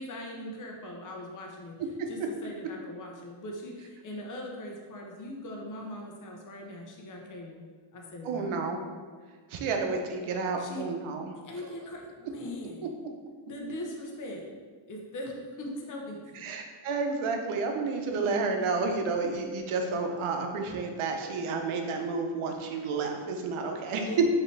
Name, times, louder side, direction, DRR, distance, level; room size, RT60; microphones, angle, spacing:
voice 1, 0.0-1.8 2.1-7.7 7.9-8.7 10.6-10.9 11.4-12.9 13.5-14.5 14.9-16.4 24.0-24.2, left 1 dB, 40° left, 0 dB, 0.8 m, -40 dB
voice 2, 8.2-8.8 9.5-11.3 16.4-24.1, right 4 dB, 85° right, 3 dB, 0.8 m, -31 dB
5.3 x 2.9 x 3.2 m, 1.5 s
cardioid pair, 110°, 48 cm